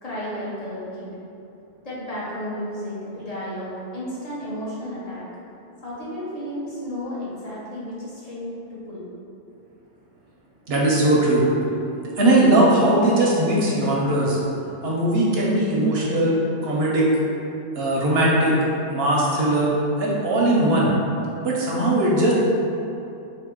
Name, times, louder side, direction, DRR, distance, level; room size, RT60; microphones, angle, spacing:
voice 1, 0.0-1.1 1.8-5.3 5.8-9.0, equal, 35° left, -8 dB, 0.9 m, -33 dB
voice 2, 10.7-11.4 12.2-14.4 14.8-17.1 17.7-18.6 18.9-19.7 20.0-21.0 21.4-22.3, right 1 dB, 55° right, -4 dB, 0.9 m, -19 dB
3.8 x 2.8 x 3.7 m, 2.7 s
omnidirectional pair, 1.4 m